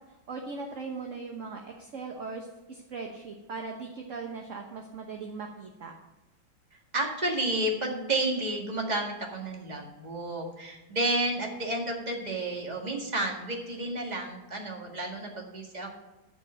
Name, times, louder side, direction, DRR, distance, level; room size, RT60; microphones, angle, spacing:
voice 1, 0.3-5.9, right 4 dB, 45° right, 2 dB, 1.1 m, -39 dB
voice 2, 6.9-16.0, right 1 dB, 20° right, 0 dB, 1.8 m, -31 dB
13.0 x 5.2 x 7.6 m, 1.0 s
omnidirectional pair, 2.3 m